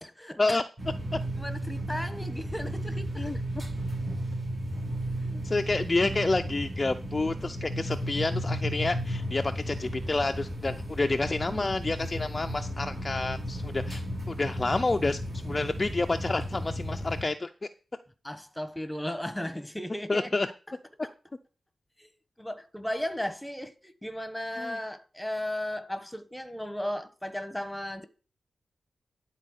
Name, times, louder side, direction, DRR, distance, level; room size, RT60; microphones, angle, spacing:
voice 1, 0.0-0.6 1.4-3.4 5.2-5.4 18.2-20.3 20.7-20.8 21.0-21.1 22.0-28.1, left 1 dB, 5° left, 1.2 m, -36 dB
sound 1, 0.8-17.2, equal, 40° right, 5.4 m, -34 dB
voice 2, 5.4-15.2 15.4-17.7 20.1-20.5 24.6-24.8, left 2 dB, 30° left, 0.5 m, -29 dB
11.0 x 4.2 x 6.4 m
wide cardioid pair, 85°, 0 cm